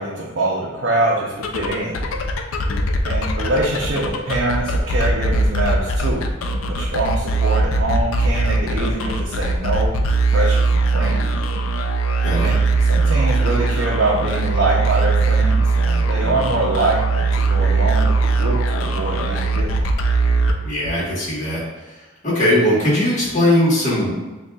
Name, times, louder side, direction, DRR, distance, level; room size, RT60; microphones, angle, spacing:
voice 1, 0.0-2.0 3.0-11.2 12.4-12.6 12.9-19.9, right 2 dB, 60° right, -4 dB, 0.6 m, -24 dB
sound 1, 1.4-21.1, right 3 dB, 85° left, 0.4 m, -20 dB
voice 2, 16.2-16.5 20.6-21.6 22.2-24.1, left 1 dB, 35° left, -7 dB, 1.4 m, -19 dB
6.3 x 2.4 x 2.3 m, 1.2 s
head